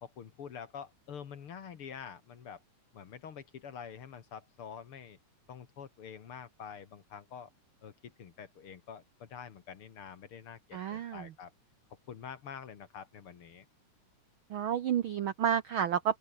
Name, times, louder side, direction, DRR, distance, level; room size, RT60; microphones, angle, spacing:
voice 1, 0.0-2.6 2.9-5.2 5.5-7.5 7.8-11.5 12.1-13.7, left 7 dB, 50° left, 2.1 m, -47 dB
voice 2, 10.7-11.3 14.5-16.2, right 9 dB, 90° right, 1.1 m, -30 dB
open air
omnidirectional pair, 3.7 m